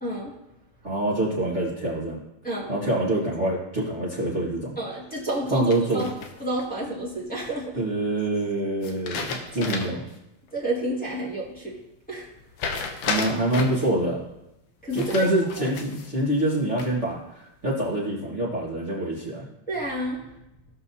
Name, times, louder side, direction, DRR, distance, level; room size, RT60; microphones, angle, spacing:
voice 1, 0.0-0.3 2.4-2.7 4.8-6.1 6.4-7.8 9.5-9.7 10.5-11.8 12.1-12.3 14.8-15.6 19.7-20.2, right 1 dB, 5° left, -8 dB, 1.3 m, -30 dB
voice 2, 0.8-2.2 2.7-4.7 5.5-6.1 7.8-10.0 13.0-14.2 14.9-19.5, right 1 dB, 45° right, -6 dB, 0.9 m, -25 dB
sound 1, 5.7-6.6 8.8-10.1 10.5-10.6 12.6-13.9 14.9-16.1 16.5-17.1, left 5 dB, 70° left, 2.2 m, -32 dB
17.0 x 6.0 x 2.8 m, 0.88 s
omnidirectional pair, 4.1 m